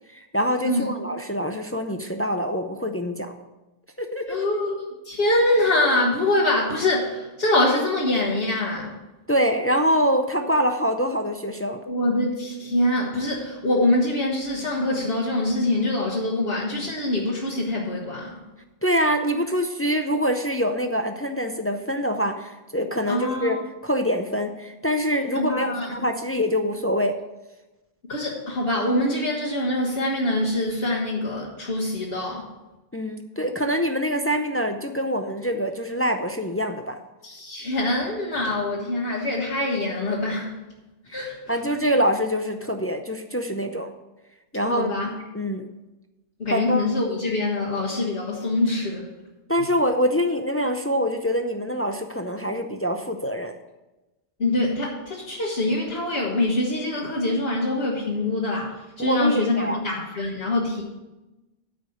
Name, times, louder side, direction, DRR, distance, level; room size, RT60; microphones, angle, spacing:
voice 1, 0.1-3.4 4.0-4.4 9.3-11.8 18.8-23.6 23.8-27.2 32.9-37.0 41.1-41.2 41.5-43.9 44.5-44.9 45.3-45.7 46.5-46.9 49.5-53.6 59.0-59.8, equal, 20° left, 6 dB, 0.4 m, -25 dB
voice 2, 4.3-9.0 11.9-18.4 23.1-23.5 25.3-26.0 28.1-32.5 37.2-40.5 41.1-41.6 44.7-45.1 46.4-49.1 54.4-60.8, left 1 dB, 65° left, -4 dB, 1.5 m, -24 dB
9.4 x 5.2 x 7.8 m, 1.0 s
omnidirectional pair, 1.1 m